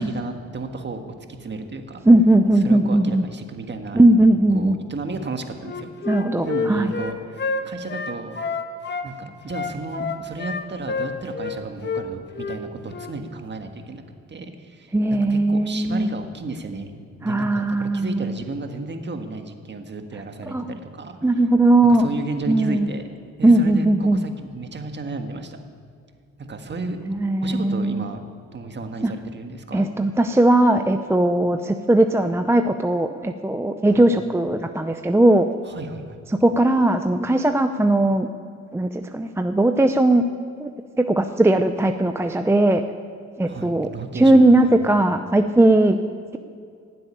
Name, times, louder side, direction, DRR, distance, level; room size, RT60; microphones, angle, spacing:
voice 1, 0.0-2.0 2.6-4.0 4.5-5.9 6.4-8.4 9.0-14.0 14.3-16.9 17.2-21.4 21.8-25.6 26.4-27.0 27.4-28.2 28.5-29.9 33.9-34.0 35.6-36.2 43.4-44.7, right 3 dB, 35° right, 6 dB, 1.6 m, -33 dB
voice 2, 2.1-3.2 3.9-4.8 6.1-6.9 14.9-16.1 17.2-18.4 20.5-20.7 21.2-22.1 22.5-22.9 23.4-24.2 27.1-28.0 29.0-29.1 29.7-35.5 36.4-38.3 38.7-40.2 40.6-40.7 41.0-42.8 43.4-43.9 44.1-46.0, right 1 dB, 10° right, 7 dB, 0.6 m, -18 dB
Wind instrument woodwind instrument, 5.6-9.1 9.5-11.6 11.8-12.0 12.3-12.6 12.9-13.1, left 4 dB, 35° left, 1.3 m, -28 dB
15.5 x 7.8 x 9.9 m, 2.2 s
cardioid pair, 90°, 30 cm